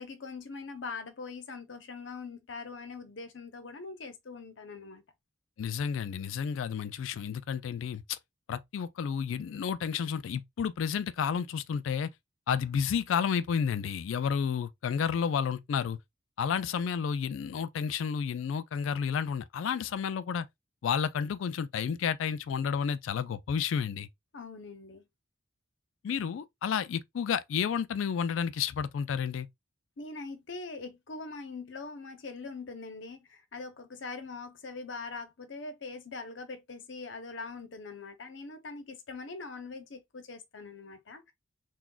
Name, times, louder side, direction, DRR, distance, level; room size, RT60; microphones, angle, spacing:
voice 1, 0.0-5.0 24.3-25.0 30.0-41.3, left 4 dB, 70° left, 0.7 m, -42 dB
voice 2, 5.6-8.2 8.5-12.1 12.5-16.0 16.4-20.5 20.8-24.1 26.0-29.5, left 7 dB, 85° left, 0.3 m, -31 dB
5.9 x 2.3 x 2.3 m
head